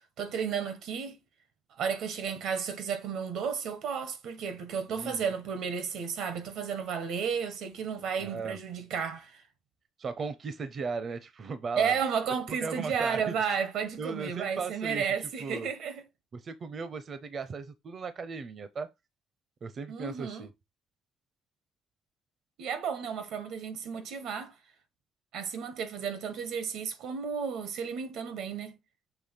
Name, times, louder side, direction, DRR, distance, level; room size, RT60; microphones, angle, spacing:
voice 1, 0.2-1.2 1.8-9.4 11.8-16.0 19.9-20.5 22.6-24.5 25.3-28.8, right 6 dB, 85° right, 1.5 m, -33 dB
voice 2, 8.2-8.6 10.0-12.0 12.5-13.3 14.0-15.0 15.4-15.7 16.3-18.9 19.6-20.5, right 5 dB, 50° right, 0.8 m, -37 dB
6.9 x 3.2 x 5.7 m
cardioid pair, 90°, 0 cm